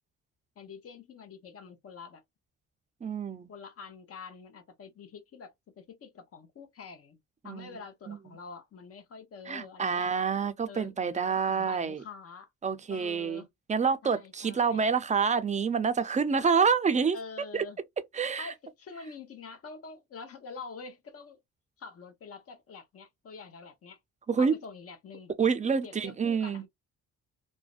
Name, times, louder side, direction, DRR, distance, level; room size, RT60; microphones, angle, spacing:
voice 1, 0.6-2.2 3.5-7.2 7.4-10.1 10.7-12.5 12.9-13.5 14.0-14.9 17.1-17.8 18.4-21.4 21.8-24.0 24.4-25.3 25.8-26.7, left 5 dB, 50° left, 0.8 m, -46 dB
voice 2, 3.0-3.5 7.4-7.7 8.1-8.2 9.5-12.0 12.6-13.4 13.7-17.2 17.5-17.6 18.1-18.5 24.3-24.5 25.4-26.6, right 5 dB, 25° right, 0.4 m, -27 dB
2.5 x 2.1 x 2.3 m
cardioid pair, 90°, 30 cm